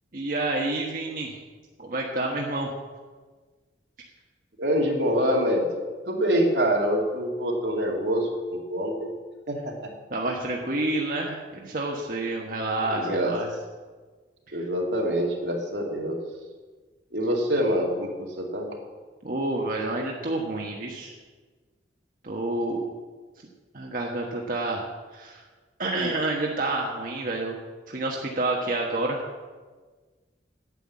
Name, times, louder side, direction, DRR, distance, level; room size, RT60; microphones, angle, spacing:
voice 1, 0.1-1.4 1.8-2.7 10.1-13.5 14.5-14.6 19.2-21.1 22.2-22.8 23.7-24.9 25.1-25.4 25.8-27.5 27.9-29.2, right 2 dB, 50° right, -1 dB, 1.2 m, -28 dB
voice 2, 4.6-5.7 6.1-9.1 9.5-9.9 12.8-13.3 14.5-16.2 17.1-18.8, equal, 80° right, 0 dB, 2.4 m, -25 dB
9.3 x 8.9 x 7.5 m, 1.4 s
head